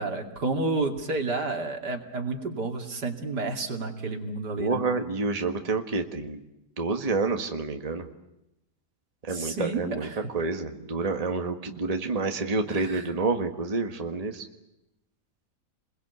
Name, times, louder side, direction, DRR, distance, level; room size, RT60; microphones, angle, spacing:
voice 1, 0.0-4.8 9.3-10.2 12.7-13.1, right 3 dB, 75° right, 4 dB, 3.2 m, -30 dB
voice 2, 4.6-6.4 6.8-8.1 9.2-10.1 10.3-14.5, right 3 dB, 25° right, 5 dB, 1.7 m, -28 dB
29.5 x 21.5 x 8.2 m, 0.87 s
omnidirectional pair, 1.8 m